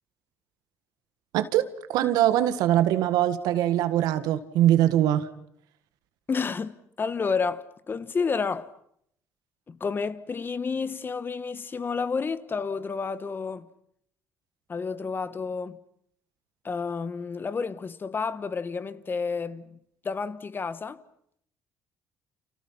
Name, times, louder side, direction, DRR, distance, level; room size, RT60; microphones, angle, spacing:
voice 1, 1.3-5.3, right 12 dB, 85° right, 1.7 m, -22 dB
voice 2, 6.3-8.7 9.7-13.7 14.7-15.8 16.6-19.8 20.0-21.0, left 5 dB, 35° left, 1.4 m, -30 dB
30.0 x 29.0 x 5.9 m
cardioid pair, 90°, 7 cm